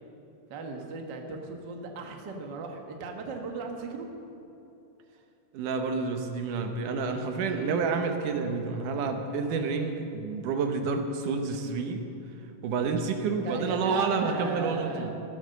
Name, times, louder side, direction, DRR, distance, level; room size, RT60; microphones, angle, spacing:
voice 1, 0.5-4.1 13.4-15.1, right 3 dB, 45° right, 2 dB, 1.5 m, -37 dB
voice 2, 5.5-12.0 12.6-15.1, right 4 dB, 75° right, 5 dB, 2.6 m, -29 dB
15.5 x 12.0 x 6.8 m, 2.9 s
omnidirectional pair, 3.8 m